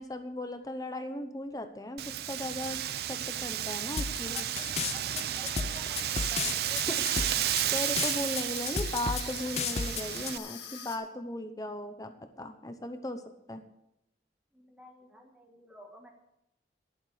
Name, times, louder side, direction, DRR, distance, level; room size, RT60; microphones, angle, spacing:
voice 1, 0.0-2.8 3.1-4.4 6.9-7.0 7.7-12.1 12.4-13.2 13.5-13.6, left 1 dB, 20° left, 8 dB, 0.8 m, -37 dB
Wind, 2.0-10.4, right 11 dB, 60° right, 0.5 m, -33 dB
sound 1, 4.0-10.3, left 6 dB, 35° left, 0.4 m, -33 dB
voice 2, 4.3-6.6 14.5-16.1, equal, 5° right, 1 dB, 1.5 m, -51 dB
Water tap faucet / Sink (filling or washing), 5.8-11.0, left 8 dB, 75° left, 1.8 m, -45 dB
11.0 x 11.0 x 4.9 m, 0.85 s
head